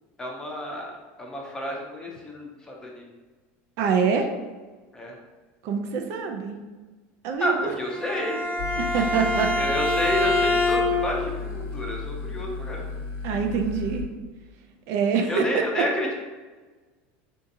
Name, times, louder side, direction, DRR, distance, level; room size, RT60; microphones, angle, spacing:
voice 1, 0.2-3.0 4.9-5.2 7.4-8.4 9.6-12.9 15.3-16.1, left 1 dB, 10° left, -1 dB, 0.6 m, -30 dB
voice 2, 3.8-4.3 5.6-6.6 7.2-7.7 8.8-9.5 13.2-14.0 14.9-15.5 15.8-15.9, right 6 dB, 55° right, 4 dB, 0.3 m, -25 dB
Bowed string instrument, 7.8-11.2, left 2 dB, 35° right, 0.9 m, -25 dB
sound 1, 8.6-14.0, left 4 dB, 75° left, 0.9 m, -34 dB
3.7 x 2.7 x 2.5 m, 1.3 s
supercardioid pair, 140°, 6 cm